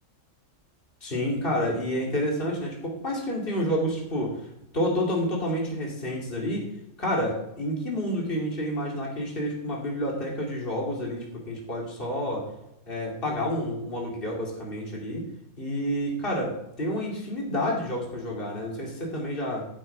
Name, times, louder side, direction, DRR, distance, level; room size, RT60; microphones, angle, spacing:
voice 1, 1.0-6.7 7.0-12.5 12.9-15.2 15.6-19.7, equal, 40° left, -2 dB, 3.3 m, -29 dB
14.5 x 7.4 x 4.8 m, 0.86 s
omnidirectional pair, 1.4 m